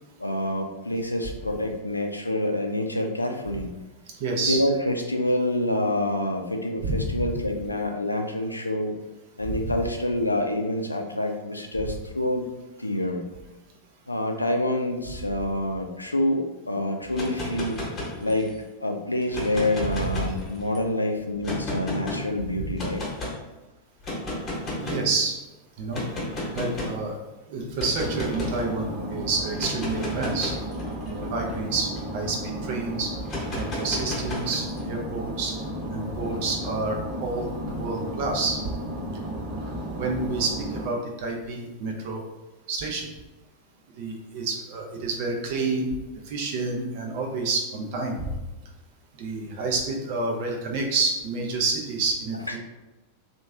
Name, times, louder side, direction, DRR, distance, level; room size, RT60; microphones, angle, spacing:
voice 1, 0.2-3.7 4.4-9.0 9.4-12.5 12.8-13.2 14.1-17.8 18.2-18.5 18.8-23.1 52.5-52.6, left 1 dB, 85° left, 3 dB, 0.4 m, -27 dB
voice 2, 4.2-4.6 6.8-7.3 9.5-9.6 22.6-22.8 24.8-25.4 25.8-26.0 26.5-27.2 27.5-30.5 31.1-33.1 33.6-35.5 35.9-38.6 39.9-42.2 42.7-43.1 44.0-45.9 46.3-48.3 49.2-52.6, right 3 dB, 50° right, 0 dB, 0.7 m, -29 dB
sound 1, 17.0-18.6 19.2-20.8 21.4-22.2 22.8-23.4 24.0-25.1 25.9-27.0 27.8-28.6 29.5-32.3 33.2-34.8, left 1 dB, 25° left, 1.1 m, -33 dB
sound 2, 28.0-40.9, equal, 30° right, 1.3 m, -33 dB
3.0 x 2.5 x 3.5 m, 1.1 s
figure-of-eight pair, 90°, 0 cm